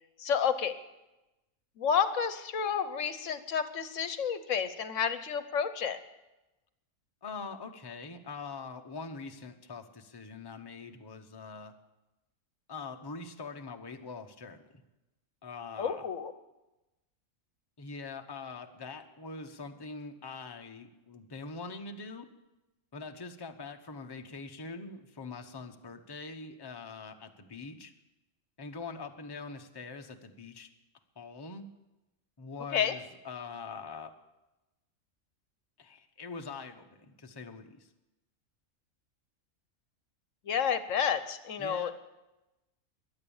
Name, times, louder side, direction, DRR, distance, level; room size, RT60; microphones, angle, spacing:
voice 1, 0.2-0.7 1.8-6.0 15.8-16.3 32.7-32.9 40.5-41.9, left 7 dB, 70° left, 11 dB, 1.2 m, -30 dB
voice 2, 7.2-11.7 12.7-14.8 15.4-16.1 17.8-22.3 22.9-27.9 28.6-30.7 31.2-31.7 32.4-34.1 35.8-37.9 41.6-41.9, left 4 dB, 20° left, 5 dB, 0.9 m, -43 dB
22.5 x 8.8 x 7.1 m, 1.0 s
omnidirectional pair, 1.4 m